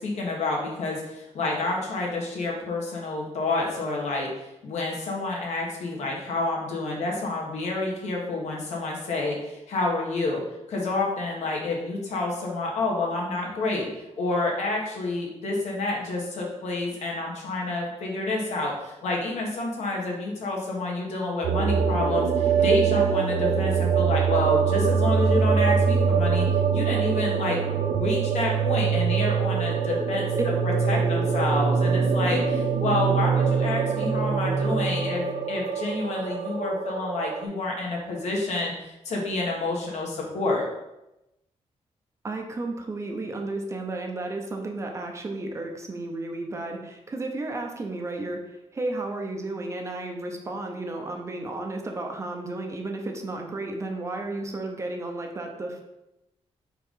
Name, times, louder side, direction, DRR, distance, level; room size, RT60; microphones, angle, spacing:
voice 1, 0.0-4.3 4.6-10.4 10.7-13.9 14.2-26.4 26.7-30.3 30.6-40.7, left 2 dB, 70° left, -1 dB, 1.6 m, -29 dB
sound 1, 21.4-37.4, right 6 dB, 70° right, 0.7 m, -24 dB
voice 2, 31.0-31.3 42.2-55.8, right 2 dB, 25° right, 2 dB, 0.6 m, -33 dB
4.6 x 3.8 x 5.4 m, 0.93 s
wide cardioid pair, 180°, 12 cm